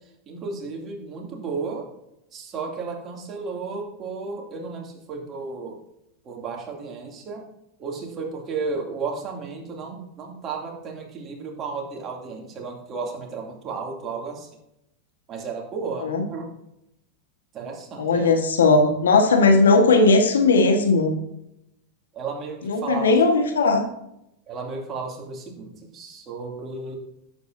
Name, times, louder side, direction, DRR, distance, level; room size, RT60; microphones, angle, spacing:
voice 1, 0.3-1.9 2.3-5.8 6.2-7.4 7.8-14.5 15.3-16.5 17.5-18.3 22.1-23.2 24.5-27.0, right 4 dB, 35° right, 0 dB, 2.6 m, -33 dB
voice 2, 18.0-21.1 22.6-23.8, left 3 dB, 90° left, 5 dB, 1.4 m, -18 dB
11.0 x 7.9 x 2.7 m, 0.82 s
hypercardioid pair, 105°, 0 cm